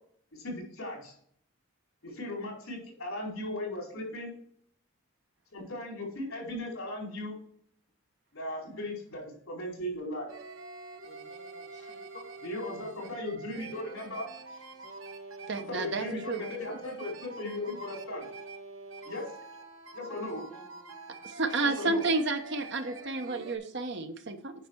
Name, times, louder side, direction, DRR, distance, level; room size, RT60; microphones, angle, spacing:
voice 1, 0.3-1.1 2.0-4.3 5.5-7.4 8.3-10.3 11.8-11.9 12.4-14.3 15.5-18.3 19.0-19.3 19.9-20.4 21.6-22.1, left 1 dB, 75° left, -1 dB, 4.3 m, -37 dB
sound 1, 10.3-23.6, right 3 dB, 75° right, 1.3 m, -46 dB
voice 2, 11.0-12.0 13.8-14.8 20.3-21.2 21.5-21.8, left 1 dB, 35° left, -1 dB, 2.4 m, -58 dB
voice 3, 15.5-16.5 21.2-24.5, right 3 dB, 55° right, 7 dB, 1.0 m, -31 dB
9.0 x 5.6 x 4.6 m, 0.64 s
head